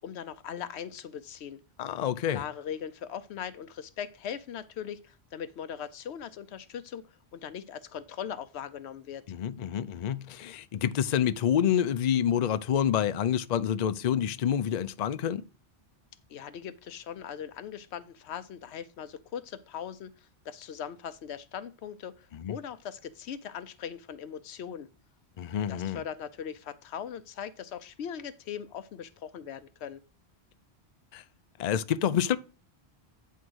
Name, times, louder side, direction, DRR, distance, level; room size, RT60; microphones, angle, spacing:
voice 1, 0.0-1.6 2.3-9.2 16.3-20.1 20.4-24.9 25.7-30.0, left 8 dB, 90° left, 0.9 m, -40 dB
voice 2, 1.8-2.4 9.3-15.4 22.3-22.5 25.4-26.0 31.1-31.2 31.6-32.4, left 9 dB, 50° left, 0.5 m, -28 dB
9.2 x 3.7 x 6.2 m
omnidirectional pair, 1.1 m